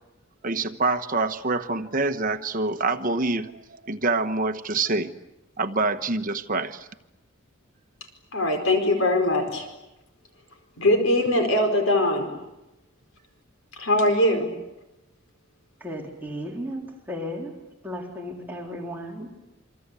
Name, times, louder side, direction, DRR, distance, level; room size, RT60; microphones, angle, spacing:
voice 1, 0.4-3.5 3.9-5.1 5.6-6.8, right 3 dB, 40° right, 1.2 m, -25 dB
voice 2, 8.3-9.7 10.8-12.3 13.8-14.5, left 1 dB, 80° left, 4.7 m, -21 dB
voice 3, 15.8-17.5 17.8-19.3, equal, 10° right, 3.8 m, -34 dB
27.5 x 25.5 x 8.4 m
head